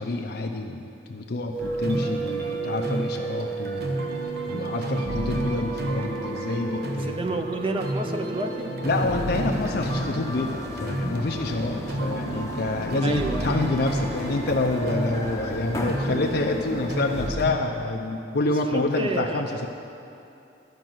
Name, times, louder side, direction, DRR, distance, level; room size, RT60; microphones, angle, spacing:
voice 1, 0.0-4.0 4.5-7.2 8.8-19.7, left 2 dB, 55° left, 2 dB, 0.6 m, -27 dB
sound 1, 1.5-9.8, right 5 dB, 80° right, 1.3 m, -34 dB
sound 2, 1.6-17.5, right 1 dB, 55° right, 1.0 m, -31 dB
voice 2, 7.0-8.8 13.0-13.6 18.5-19.6, right 2 dB, 30° right, 5 dB, 0.6 m, -30 dB
sound 3, 8.8-17.3, left 1 dB, 15° left, 0.8 m, -35 dB
12.5 x 5.2 x 7.7 m, 2.7 s
head